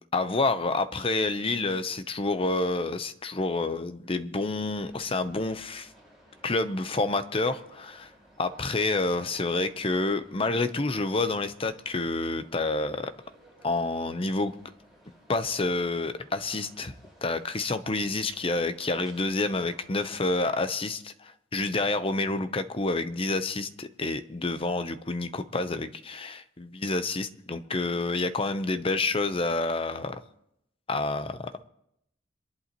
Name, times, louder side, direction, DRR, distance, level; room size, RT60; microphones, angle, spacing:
voice 1, 0.1-5.9 6.4-8.1 8.4-13.1 13.6-14.5 15.3-16.9 17.2-30.2 30.9-31.5, left 3 dB, 30° left, 10 dB, 0.8 m, -28 dB
sound 1, 4.7-20.7, equal, ahead, 5.7 m, -57 dB
26.5 x 11.0 x 3.0 m, 0.78 s
head